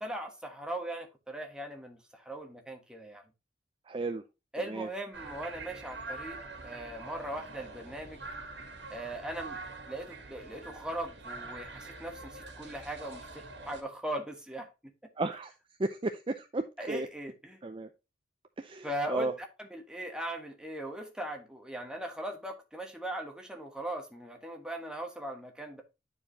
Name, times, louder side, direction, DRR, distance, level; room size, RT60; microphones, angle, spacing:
voice 1, 0.0-3.2 4.5-8.2 8.9-9.6 9.9-14.7 16.8-17.6 18.8-19.3 19.6-25.8, right 1 dB, 5° right, 1.4 m, -39 dB
voice 2, 3.9-4.2 4.6-4.9 15.2-15.5 15.8-17.1 17.6-17.9 18.6-19.3, right 2 dB, 30° right, 0.5 m, -34 dB
sound 1, 5.1-13.8, right 3 dB, 70° right, 2.2 m, -45 dB
10.5 x 4.8 x 2.8 m
head